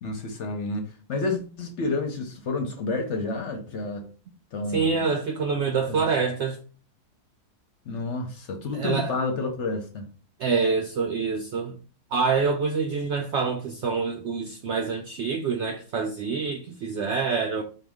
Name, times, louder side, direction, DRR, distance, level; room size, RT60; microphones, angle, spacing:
voice 1, 0.0-4.0 4.5-5.0 5.9-6.1 7.9-10.1, left 3 dB, 60° left, 0.8 m, -30 dB
voice 2, 4.7-6.6 8.7-9.1 10.4-11.8 12.1-17.6, right 5 dB, 80° right, 0.6 m, -26 dB
4.6 x 2.3 x 3.5 m
omnidirectional pair, 1.7 m